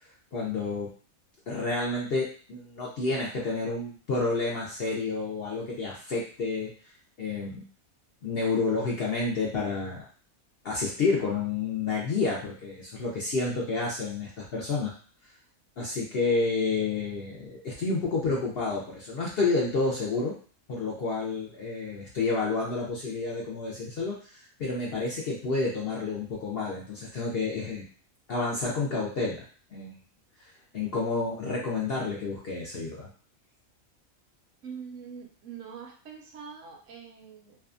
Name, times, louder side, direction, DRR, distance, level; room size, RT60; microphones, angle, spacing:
voice 1, 0.0-0.9 1.5-6.7 7.2-7.6 8.2-10.1 10.6-14.9 15.2-15.3 15.8-20.3 20.7-27.8 28.3-29.4 29.7-30.0 30.4-33.1, left 3 dB, 65° left, -4 dB, 0.6 m, -30 dB
voice 2, 34.6-37.6, right 6 dB, 70° right, 2 dB, 0.9 m, -43 dB
2.6 x 2.2 x 2.4 m, 0.43 s
omnidirectional pair, 1.5 m